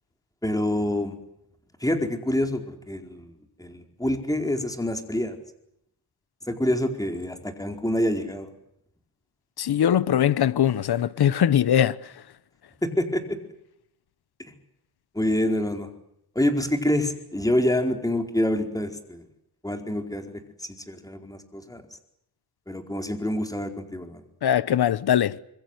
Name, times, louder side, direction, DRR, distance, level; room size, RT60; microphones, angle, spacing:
voice 1, 0.4-1.1 1.8-3.3 3.6-5.4 6.5-8.5 12.8-13.4 15.1-15.9 16.3-19.2 19.6-20.4 20.9-21.8 22.7-24.2, left 1 dB, 10° left, 4.6 m, -26 dB
voice 2, 9.6-12.0 24.4-25.4, left 10 dB, 75° left, 1.1 m, -21 dB
26.5 x 22.5 x 8.1 m
cardioid pair, 90°, 39 cm